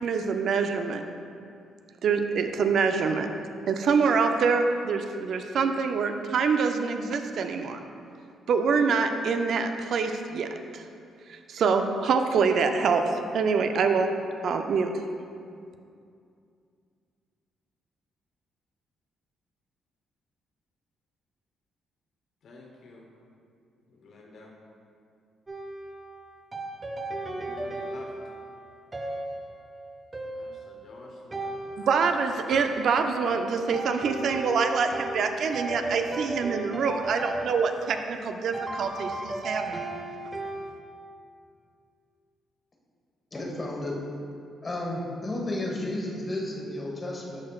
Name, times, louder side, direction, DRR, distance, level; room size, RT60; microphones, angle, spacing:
voice 1, 0.0-1.0 2.0-3.3 3.7-7.8 8.5-10.8 11.3-14.2 14.4-14.9 31.8-39.8, right 5 dB, 65° right, 6 dB, 0.4 m, -25 dB
voice 2, 22.4-23.1 23.9-24.5 27.3-28.1 30.3-31.5, left 3 dB, 65° left, 0 dB, 0.9 m, -49 dB
sound 1, 25.5-40.7, right 2 dB, 20° right, 0.7 m, -36 dB
voice 3, 43.3-43.9 44.6-47.4, left 1 dB, 30° left, -1 dB, 1.2 m, -32 dB
12.0 x 4.2 x 2.4 m, 2.4 s
cardioid pair, 90°, 0 cm